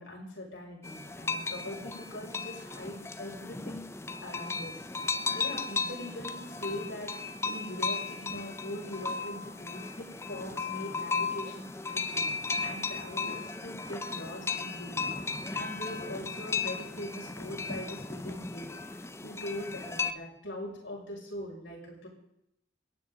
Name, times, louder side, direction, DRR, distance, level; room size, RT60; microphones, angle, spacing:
voice 1, 0.0-3.9 4.2-4.8 5.3-7.1 7.4-12.3 12.6-15.1 15.5-18.7 19.2-22.1, left 1 dB, 85° left, -2 dB, 6.3 m, -41 dB
sound 1, 0.8-20.1, left 4 dB, 15° left, 0.5 m, -35 dB
27.5 x 9.8 x 4.0 m, 0.79 s
head